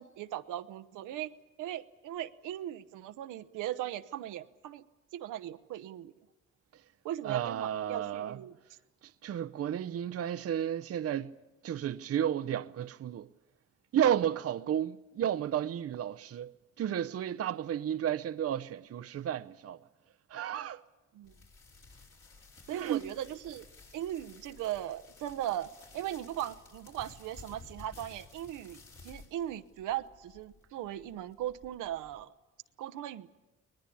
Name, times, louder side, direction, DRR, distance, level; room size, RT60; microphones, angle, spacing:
voice 1, 0.0-1.3 1.6-4.8 5.1-6.1 7.0-8.5 21.1-21.3 22.7-23.7 23.9-32.3 32.8-33.3, right 12 dB, 90° right, 1.0 m, -38 dB
voice 2, 7.2-8.4 9.2-11.3 11.6-13.3 13.9-19.8 20.3-20.8 22.7-23.1, right 10 dB, 50° right, 0.7 m, -32 dB
sound 1, 21.2-32.2, left 3 dB, 50° left, 6.1 m, -55 dB
21.0 x 20.5 x 8.6 m
cardioid pair, 90°, 30 cm